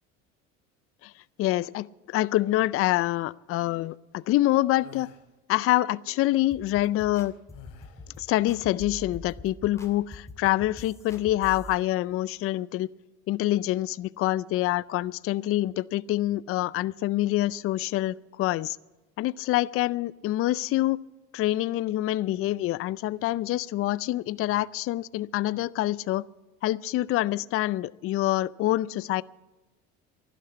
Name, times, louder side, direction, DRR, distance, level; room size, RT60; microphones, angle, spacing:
voice 1, 1.4-5.1 5.5-7.3 8.2-12.9 13.3-18.8 19.2-21.0 21.3-26.2 26.6-29.2, left 15 dB, 45° left, 0.4 m, -26 dB
sound 1, 4.7-5.3 7.5-8.2, left 9 dB, 80° left, 2.4 m, -49 dB
sound 2, 6.5-11.7, left 1 dB, 10° left, 2.2 m, -45 dB
12.0 x 11.5 x 8.4 m
supercardioid pair, 100°, 32 cm